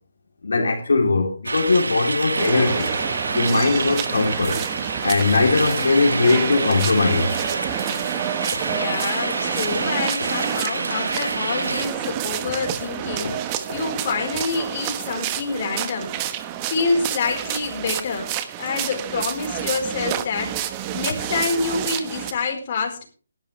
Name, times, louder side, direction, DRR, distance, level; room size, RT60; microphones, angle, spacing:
voice 1, 0.4-2.9 3.3-4.6 5.0-7.3 13.2-13.4, left 3 dB, 70° left, 3.3 m, -20 dB
sound 1, 1.5-11.8, right 3 dB, 75° right, 1.3 m, -28 dB
sound 2, 2.4-22.3, right 11 dB, 25° right, 1.2 m, -29 dB
voice 2, 8.5-16.2 16.7-18.3 18.6-23.0, left 4 dB, 40° left, 4.5 m, -27 dB
18.5 x 12.0 x 3.3 m
figure-of-eight pair, 155°, 0 cm